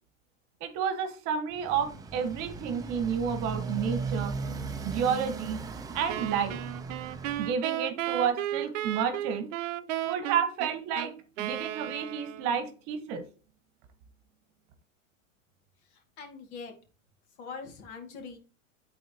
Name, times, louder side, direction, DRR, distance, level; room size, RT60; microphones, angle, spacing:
voice 1, 0.6-4.3 4.8-5.6 5.9-6.6 7.4-9.5 10.0-11.1 11.4-13.2, right 7 dB, 45° right, 9 dB, 1.3 m, -30 dB
Motorcycle, 1.5-7.5, right 4 dB, 10° right, 0.5 m, -37 dB
Wind instrument woodwind instrument, 6.1-12.7, right 12 dB, 65° right, 0.7 m, -34 dB
voice 2, 15.9-16.7 17.4-18.4, left 5 dB, 55° left, 4 dB, 2.2 m, -43 dB
11.5 x 4.1 x 2.9 m, 0.36 s
supercardioid pair, 130°, 39 cm